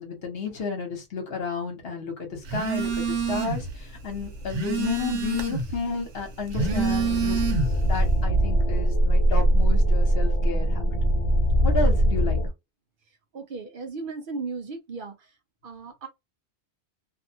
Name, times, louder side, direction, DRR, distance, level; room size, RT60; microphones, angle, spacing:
voice 1, 0.0-7.5 7.8-10.9 11.6-12.4, left 5 dB, 60° left, 1.2 m, -32 dB
Telephone, 2.5-3.7 4.1-5.8 6.4-7.9, right 5 dB, 85° right, 1.1 m, -27 dB
sound 1, 6.6-12.5, right 1 dB, 45° left, 0.5 m, -22 dB
voice 2, 13.3-15.3 15.6-16.1, right 4 dB, 60° right, 0.7 m, -36 dB
2.6 x 2.3 x 2.7 m
omnidirectional pair, 1.2 m